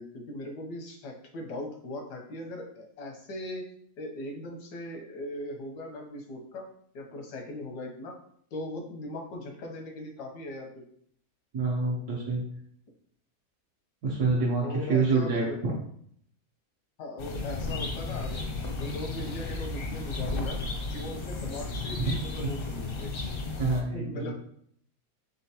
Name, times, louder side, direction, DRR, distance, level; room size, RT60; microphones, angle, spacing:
voice 1, 0.0-3.6 4.0-6.7 6.9-8.2 8.5-10.8 14.6-15.6 17.0-18.5 18.8-20.6 20.9-23.1 23.9-24.3, left 1 dB, 85° left, 3 dB, 1.4 m, -39 dB
voice 2, 11.5-12.5 14.0-15.8 21.9-22.0 23.6-24.3, right 3 dB, 75° right, -4 dB, 1.5 m, -27 dB
sound 1, 17.2-23.8, left 3 dB, 60° left, 0.6 m, -34 dB
4.3 x 3.8 x 2.8 m, 0.64 s
omnidirectional pair, 1.7 m